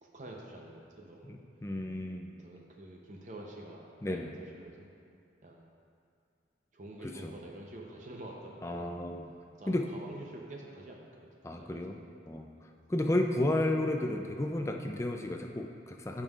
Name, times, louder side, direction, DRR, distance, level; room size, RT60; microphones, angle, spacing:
voice 1, 0.0-1.4 2.4-4.9 5.4-5.7 6.7-8.8 9.6-11.3 11.6-11.8 12.6-12.7, right 1 dB, 40° right, -1 dB, 0.6 m, -48 dB
voice 2, 1.2-2.4 4.0-4.3 7.0-7.3 8.6-9.3 9.7-9.9 11.4-12.0 12.3-12.5 12.9-16.2, left 1 dB, 15° left, 3 dB, 0.4 m, -32 dB
14.5 x 5.4 x 2.4 m, 2.4 s
head